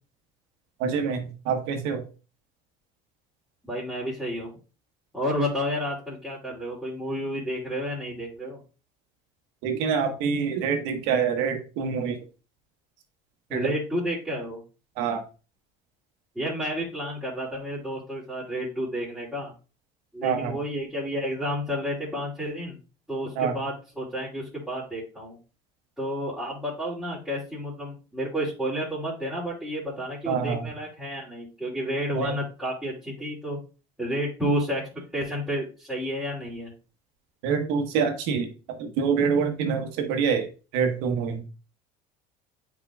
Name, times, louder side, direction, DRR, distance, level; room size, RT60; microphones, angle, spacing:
voice 1, 0.8-2.0 9.6-12.2 13.5-13.7 15.0-15.2 20.2-20.6 23.4-23.6 30.3-30.6 32.1-32.4 37.4-38.5 38.8-41.4, right 6 dB, 80° right, 6 dB, 1.4 m, -26 dB
voice 2, 3.6-4.5 5.1-8.6 13.5-14.6 16.3-19.5 20.1-22.8 23.1-25.4 26.0-33.6 34.0-36.7, equal, ahead, -8 dB, 3.0 m, -31 dB
9.0 x 4.9 x 2.5 m, 0.34 s
supercardioid pair, 105°, 18 cm